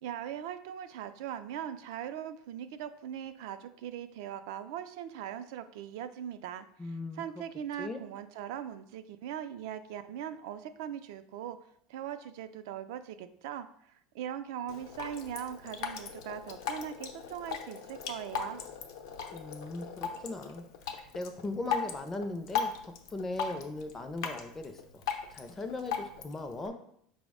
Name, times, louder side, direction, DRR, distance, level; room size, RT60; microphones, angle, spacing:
voice 1, 0.0-11.6 11.9-18.6, right 10 dB, 75° right, 10 dB, 0.3 m, -40 dB
voice 2, 6.8-7.2 7.8-8.0 19.3-25.0 25.3-26.7, left 2 dB, 15° left, 6 dB, 0.4 m, -39 dB
Drip, 14.7-26.7, left 7 dB, 85° left, 0.6 m, -38 dB
5.0 x 2.1 x 4.8 m, 0.68 s
supercardioid pair, 155°, 2 cm